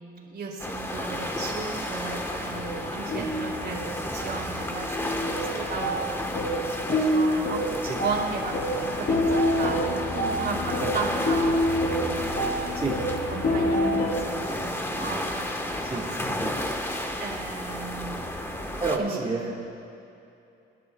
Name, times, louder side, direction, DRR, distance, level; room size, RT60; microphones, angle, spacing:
voice 1, 0.0-7.6 8.0-12.4 13.3-16.3 16.7-16.8 17.2-18.7 19.0-19.4, right 4 dB, 55° right, -2 dB, 3.0 m, -36 dB
sound 1, 0.6-19.0, left 1 dB, 10° left, 1.3 m, -32 dB
sound 2, 2.4-14.1, equal, 65° left, 3.1 m, -27 dB
voice 2, 16.4-16.9 18.8-19.5, right 3 dB, 25° right, -4 dB, 1.6 m, -30 dB
28.0 x 11.0 x 2.3 m, 2.6 s
cardioid pair, 90°, 20 cm